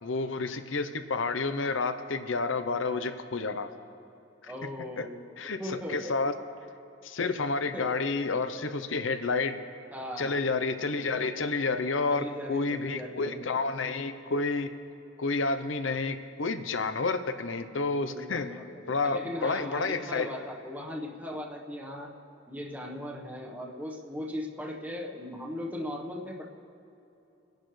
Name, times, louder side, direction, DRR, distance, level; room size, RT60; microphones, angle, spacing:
voice 1, 0.0-3.7 4.4-4.5 5.0-5.1 5.4-5.6 5.9-6.3 7.0-9.5 10.2-14.7 15.2-18.5 18.9-20.3, left 3 dB, 75° left, 9 dB, 0.8 m, -30 dB
voice 2, 4.5-6.2 7.2-7.4 7.7-7.9 9.9-10.4 12.1-13.4 18.1-22.1 22.5-26.5, left 1 dB, 10° right, -2 dB, 1.2 m, -38 dB
25.0 x 10.5 x 3.3 m, 2.8 s
head